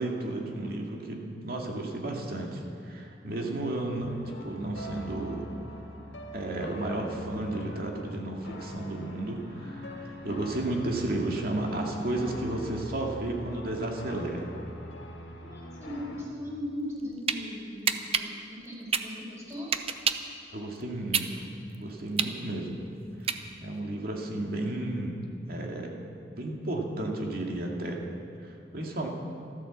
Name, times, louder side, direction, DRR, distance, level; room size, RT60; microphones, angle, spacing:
voice 1, 0.0-5.5 6.3-14.4 20.5-21.4 21.7-22.8 23.2-23.4 23.6-25.2 25.5-25.9 26.4-28.0 28.4-29.1, right 1 dB, 55° right, 0 dB, 2.2 m, -33 dB
sound 1, 4.0-16.2, left 1 dB, 85° left, 2.0 m, -43 dB
voice 2, 15.4-18.3 18.6-19.8, left 1 dB, 15° right, -4 dB, 4.5 m, -38 dB
sound 2, 16.8-17.4 17.9-20.3 20.8-23.8, right 7 dB, 35° right, 0.6 m, -29 dB
13.5 x 13.5 x 7.3 m, 2.4 s
head